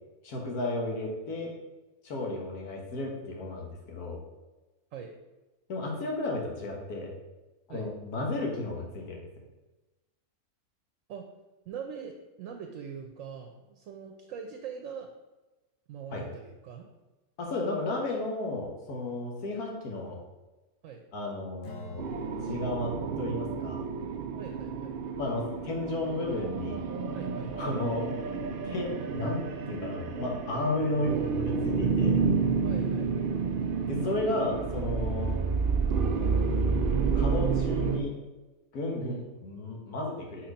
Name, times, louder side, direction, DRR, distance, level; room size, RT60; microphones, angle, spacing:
voice 1, 0.2-1.5 2.0-4.2 5.7-7.1 7.7-9.2 16.1-16.3 17.4-20.2 21.1-23.8 25.2-26.8 27.6-28.4 28.6-31.1 31.6-32.3 33.9-35.4 37.2-38.2 38.7-39.1 39.4-40.5, left 2 dB, 85° left, 0 dB, 1.7 m, -33 dB
voice 2, 11.7-15.1 15.9-16.9 20.8-21.0 24.4-25.1 27.1-27.7 30.9-31.1 32.6-33.1 39.0-39.3, right 7 dB, 70° right, 4 dB, 0.9 m, -42 dB
Strum, 21.6-28.0, left 1 dB, 70° left, 1.3 m, -50 dB
sound 1, 22.0-38.0, right 5 dB, 85° right, 0.4 m, -30 dB
4.6 x 4.5 x 5.2 m, 1.1 s
omnidirectional pair, 1.6 m